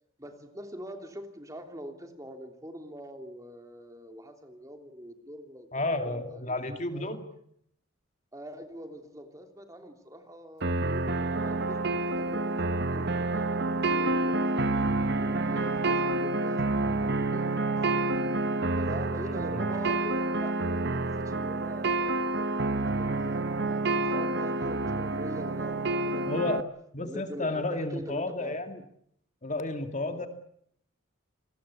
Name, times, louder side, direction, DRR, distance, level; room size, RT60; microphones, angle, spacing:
voice 1, 0.2-7.1 8.3-18.4 18.7-26.6 27.0-28.6 30.0-30.3, equal, 15° right, 5 dB, 3.1 m, -44 dB
voice 2, 5.7-7.2 19.5-19.6 26.3-26.7 26.9-28.8 29.4-30.3, left 2 dB, 35° left, 7 dB, 2.2 m, -31 dB
sound 1, 10.6-26.6, right 2 dB, 50° right, 1.0 m, -28 dB
29.0 x 20.5 x 8.5 m, 0.72 s
head